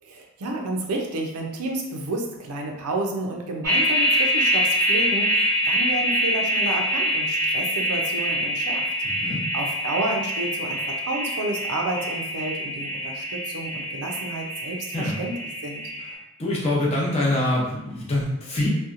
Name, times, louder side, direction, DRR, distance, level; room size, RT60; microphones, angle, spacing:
voice 1, 0.0-8.9 9.5-15.3 15.6-15.8, right 2 dB, 90° right, 2 dB, 0.5 m, -30 dB
sound 1, 3.6-16.1, equal, 15° right, 1.0 m, -25 dB
voice 2, 9.0-9.4 14.9-15.2 16.4-18.7, left 1 dB, 25° left, -5 dB, 0.6 m, -25 dB
2.7 x 2.2 x 2.5 m, 0.88 s
head